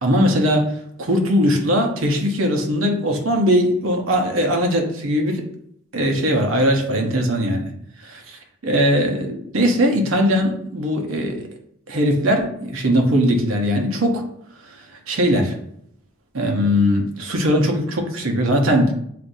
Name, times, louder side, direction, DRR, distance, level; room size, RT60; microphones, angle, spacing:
voice 1, 0.0-5.4 5.9-7.7 8.0-11.5 11.9-14.2 15.1-15.5 16.3-18.9, equal, 85° right, 2 dB, 0.8 m, -20 dB
7.5 x 2.6 x 2.6 m, 0.72 s
head